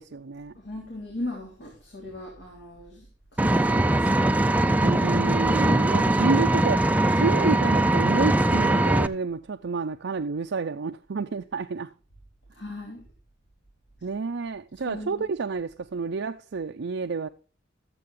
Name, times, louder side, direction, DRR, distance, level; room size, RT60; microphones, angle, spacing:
voice 1, 0.0-0.5 4.8-11.9 14.0-17.3, right 4 dB, 65° right, 0.5 m, -29 dB
voice 2, 0.5-3.1 3.3-4.1 12.5-13.0 14.9-15.2, left 1 dB, 65° left, 3.2 m, -38 dB
Vehicle, 3.4-9.1, right 1 dB, 10° right, 0.5 m, -21 dB
13.0 x 7.6 x 3.7 m
head